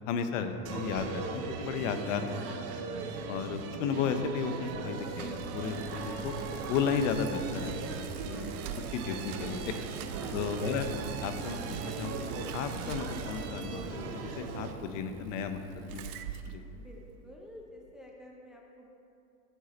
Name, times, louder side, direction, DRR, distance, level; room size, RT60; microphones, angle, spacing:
voice 1, 0.1-2.6 3.3-6.3 6.7-8.5 8.9-9.6 10.3-10.9 11.2-16.1 16.5-16.6, left 6 dB, 60° left, 7 dB, 1.1 m, -34 dB
sound 1, 0.7-14.7, right 5 dB, 35° right, 0.9 m, -39 dB
voice 2, 3.1-3.5 8.2-8.5 10.2-10.6 16.7-18.9, left 1 dB, ahead, -1 dB, 0.7 m, -51 dB
Bicycle, 4.1-17.3, right 8 dB, 75° right, 0.8 m, -44 dB
14.5 x 8.1 x 3.1 m, 2.7 s
hypercardioid pair, 120°, 44 cm